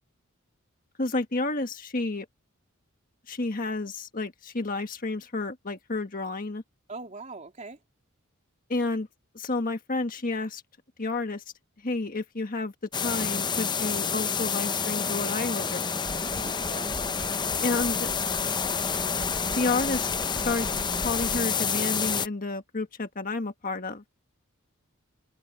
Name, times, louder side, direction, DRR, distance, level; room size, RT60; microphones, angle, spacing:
voice 1, 1.0-2.3 3.3-6.6 8.7-9.1 9.3-10.6 11.0-11.4 11.8-12.7 13.0-15.9 17.6-18.1 19.4-20.7 21.0-24.0, left 3 dB, 40° left, 1.5 m, -30 dB
voice 2, 6.9-7.8 16.2-17.0, right 3 dB, 35° right, 3.4 m, -41 dB
sound 1, 12.9-22.3, left 6 dB, 20° left, 0.6 m, -28 dB
sound 2, 16.0-21.5, right 1 dB, 75° right, 3.2 m, -42 dB
head